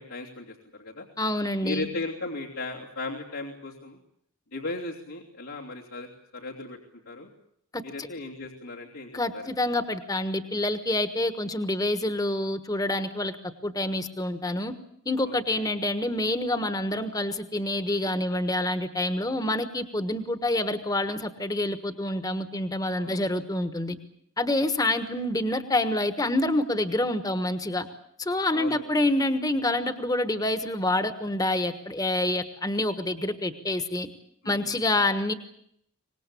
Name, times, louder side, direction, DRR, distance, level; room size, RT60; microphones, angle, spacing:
voice 1, 0.0-1.1 1.6-4.0 4.5-6.1 6.3-6.8 7.0-7.3 7.8-9.5 15.2-15.7 23.0-23.2 28.5-28.9 34.4-34.7, left 2 dB, 85° left, -4 dB, 3.2 m, -36 dB
voice 2, 1.2-1.9 7.7-8.1 9.1-13.4 13.6-14.7 15.0-24.0 24.4-27.9 28.2-34.1 34.4-35.3, left 1 dB, 15° left, 10 dB, 1.3 m, -27 dB
25.0 x 19.5 x 8.4 m, 0.70 s
head